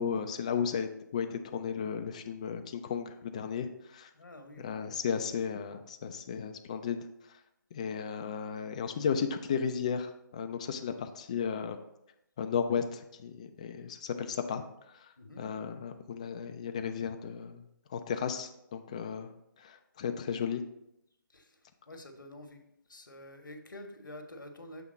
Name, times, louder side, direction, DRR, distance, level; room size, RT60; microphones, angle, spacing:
voice 1, 0.0-4.1 4.6-7.1 7.7-11.8 12.4-14.6 15.0-17.6 17.9-19.3 19.6-20.6, left 6 dB, 20° left, 7 dB, 0.3 m, -34 dB
voice 2, 4.1-4.6 15.2-15.5 21.3-21.6 21.9-22.6 22.9-24.8, left 1 dB, 70° left, 5 dB, 1.1 m, -48 dB
7.1 x 3.5 x 5.0 m, 0.81 s
figure-of-eight pair, 145°, 11 cm